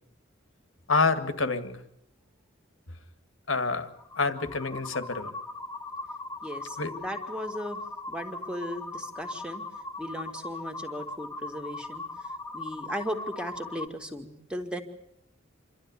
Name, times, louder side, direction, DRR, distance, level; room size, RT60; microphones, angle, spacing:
voice 1, 0.9-1.8 3.5-3.9 4.2-5.3 6.8-6.9, left 4 dB, 85° left, 9 dB, 1.8 m, -27 dB
sound 1, 3.9-13.9, left 2 dB, 15° left, 1.4 m, -39 dB
voice 2, 6.4-7.8 8.1-9.6 10.0-12.0 12.5-14.8, equal, 5° right, 4 dB, 2.1 m, -36 dB
27.0 x 12.5 x 9.7 m, 0.81 s
head